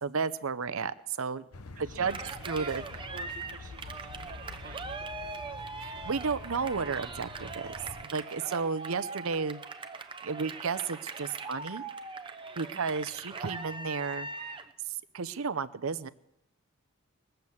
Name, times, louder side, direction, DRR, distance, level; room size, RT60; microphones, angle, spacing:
voice 1, 0.0-1.4 1.8-2.8 5.8-7.7 8.0-9.6 10.2-11.8 12.6-14.3 14.9-16.1, right 5 dB, 70° right, 15 dB, 0.7 m, -33 dB
sound 1, 1.5-8.0, left 3 dB, 90° left, 1.0 m, -46 dB
voice 2, 1.7-2.1 2.5-2.8 3.1-5.6 12.7-12.8, right 4 dB, 40° right, 3 dB, 1.1 m, -50 dB
Cheering, 2.1-14.7, right 3 dB, 25° right, 0.8 m, -41 dB
21.0 x 8.0 x 7.2 m, 0.83 s
head